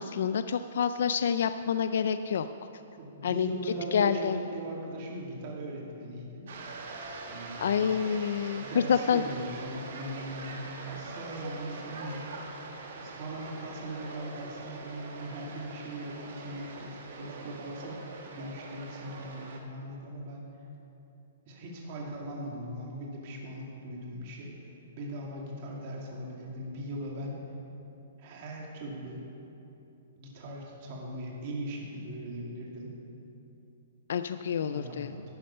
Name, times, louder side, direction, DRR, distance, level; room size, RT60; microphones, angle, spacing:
voice 1, 0.0-2.5 3.2-3.5 3.9-4.4 7.6-9.2 34.1-35.1, left 7 dB, 65° left, 11 dB, 0.3 m, -27 dB
voice 2, 3.0-6.7 7.3-7.9 8.6-12.3 13.0-20.5 21.5-24.6 25.0-27.4 28.2-29.2 30.2-32.9 34.6-35.2, right 1 dB, 35° right, -2 dB, 2.0 m, -39 dB
sound 1, 6.5-19.6, right 3 dB, 55° right, 1.4 m, -43 dB
12.5 x 9.1 x 5.5 m, 2.9 s
hypercardioid pair, 170°, 0 cm